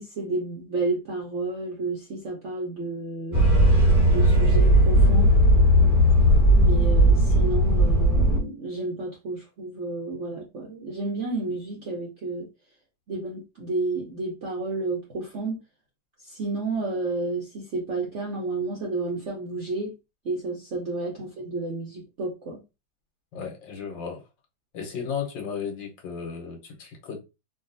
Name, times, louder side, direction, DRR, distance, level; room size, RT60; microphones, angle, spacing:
voice 1, 0.0-3.4 4.0-5.3 6.5-12.5 13.1-15.6 16.2-19.9 20.2-22.6, right 2 dB, 65° right, 0.7 m, -31 dB
sound 1, 3.3-8.4, equal, 10° left, 1.1 m, -17 dB
voice 2, 23.3-24.2 24.7-27.2, left 6 dB, 65° left, 1.6 m, -34 dB
3.5 x 2.3 x 2.5 m
omnidirectional pair, 2.2 m